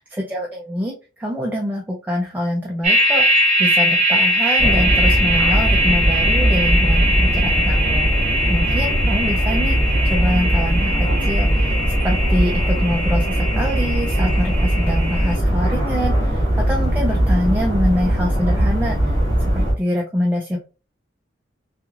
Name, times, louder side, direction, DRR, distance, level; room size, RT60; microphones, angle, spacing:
voice 1, 0.0-3.3 3.6-8.1 8.5-9.8 10.0-19.2 19.5-20.6, left 1 dB, 10° right, -1 dB, 0.3 m, -25 dB
sound 1, 2.8-15.3, equal, 40° right, 0.7 m, -21 dB
sound 2, 4.6-19.7, equal, 20° left, 1.0 m, -19 dB
3.0 x 2.4 x 2.3 m, 0.32 s
head